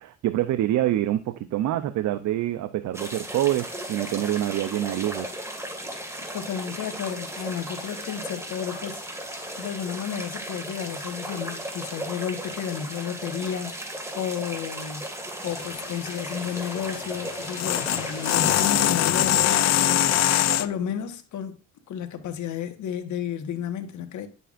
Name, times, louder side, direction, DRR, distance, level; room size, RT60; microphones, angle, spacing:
voice 1, 0.0-5.3, right 13 dB, 70° right, 0.6 m, -26 dB
sound 1, 2.9-18.7, right 1 dB, 10° right, 2.0 m, -36 dB
voice 2, 6.3-9.2 9.6-21.5 21.9-24.3, left 8 dB, 75° left, 1.3 m, -32 dB
sound 2, 15.5-20.7, left 11 dB, 60° left, 0.6 m, -24 dB
10.0 x 6.8 x 2.5 m
cardioid pair, 90°, 30 cm